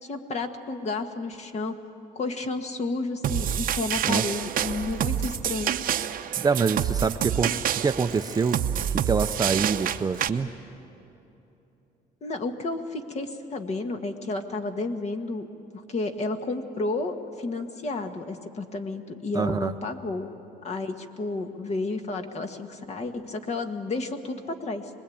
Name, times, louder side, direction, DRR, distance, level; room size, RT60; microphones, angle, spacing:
voice 1, 0.0-1.7 2.1-5.7 12.2-15.5 15.7-20.3 20.6-24.9, left 3 dB, 40° left, 6 dB, 1.7 m, -31 dB
sound 1, 3.2-10.3, right 10 dB, 55° right, 0.8 m, -27 dB
voice 2, 6.4-8.6 9.1-10.5 19.3-19.7, right 5 dB, 20° right, 9 dB, 0.6 m, -25 dB
24.5 x 20.5 x 8.7 m, 2.9 s
cardioid pair, 110°, 17 cm